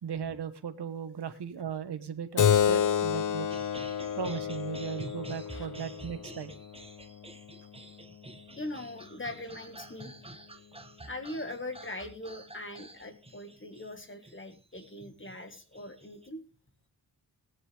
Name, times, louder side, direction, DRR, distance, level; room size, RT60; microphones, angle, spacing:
voice 1, 0.0-3.5 4.1-6.6, right 7 dB, 85° right, 9 dB, 1.4 m, -37 dB
Keyboard (musical), 2.4-7.5, left 8 dB, 50° left, 0.7 m, -29 dB
sound 1, 3.5-16.3, right 2 dB, 15° right, 1.2 m, -49 dB
voice 2, 8.6-10.1 10.9-16.4, left 1 dB, 30° left, 7 dB, 1.9 m, -41 dB
18.0 x 9.7 x 3.5 m, 0.31 s
wide cardioid pair, 95°, 39 cm